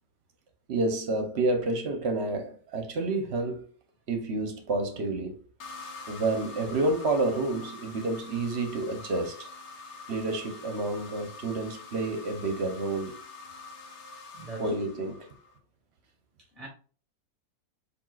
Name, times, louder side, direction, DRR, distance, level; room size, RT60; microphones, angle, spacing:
voice 1, 0.7-3.6 4.1-5.4 6.1-9.5 10.1-13.2 14.6-15.3, right 2 dB, 50° right, 0.8 m, -29 dB
sound 1, 5.6-15.6, left 3 dB, 55° left, 0.8 m, -45 dB
voice 2, 14.3-14.7 15.0-15.1 16.5-16.7, right 3 dB, ahead, 0.6 m, -42 dB
6.9 x 2.6 x 2.4 m
omnidirectional pair, 1.9 m